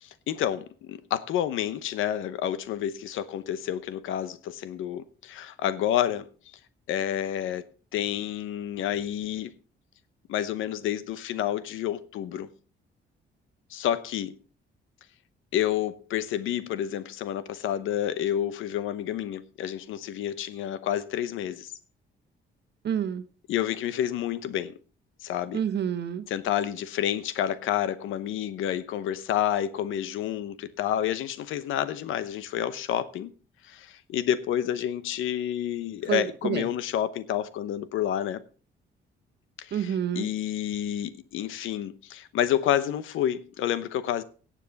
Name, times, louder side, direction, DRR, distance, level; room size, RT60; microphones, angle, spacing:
voice 1, 0.0-6.3 6.9-7.7 7.9-9.5 10.3-12.5 13.7-14.3 15.5-21.7 23.5-24.7 25.2-25.6 26.3-33.3 33.6-38.4 39.6-44.2, left 11 dB, 85° left, 0.9 m, -29 dB
voice 2, 22.8-23.2 25.5-26.2 36.1-36.7 39.7-40.3, right 9 dB, 60° right, 1.1 m, -28 dB
17.0 x 7.4 x 4.0 m
cardioid pair, 90°, 20 cm